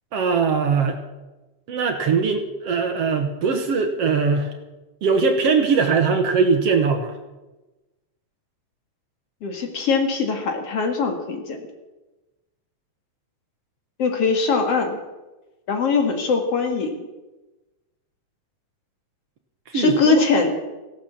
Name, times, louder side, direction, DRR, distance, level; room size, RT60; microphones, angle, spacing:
voice 1, 0.1-1.0 1.7-4.5 5.0-7.1 19.7-20.2, right 5 dB, 60° right, 6 dB, 2.1 m, -21 dB
voice 2, 9.4-11.6 14.0-15.0 15.7-17.0 19.7-20.5, left 4 dB, 55° left, 5 dB, 2.7 m, -21 dB
16.5 x 12.0 x 7.3 m, 1.1 s
omnidirectional pair, 3.5 m